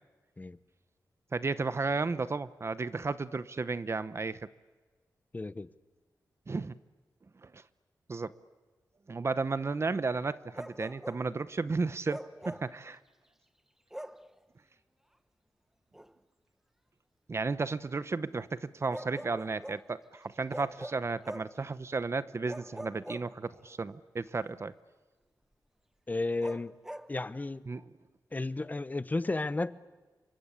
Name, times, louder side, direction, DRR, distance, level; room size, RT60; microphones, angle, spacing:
voice 1, 1.3-4.4 6.5-6.8 7.4-7.6 8.1-8.3 9.1-12.2 12.4-13.0 17.3-24.7 27.7-27.8, right 4 dB, 40° right, 14 dB, 0.9 m, -33 dB
voice 2, 5.3-5.7 26.1-26.7 27.1-27.6 28.3-29.8, left 2 dB, 25° left, 15 dB, 0.9 m, -33 dB
Bark, 10.5-11.3 12.1-12.8 13.9-14.3 15.9-16.1 18.9-19.9 20.5-21.6 22.5-23.7 26.4-27.1, equal, 5° right, 1.0 m, -43 dB
28.0 x 24.0 x 8.4 m, 1.3 s
wide cardioid pair, 100°, 7 cm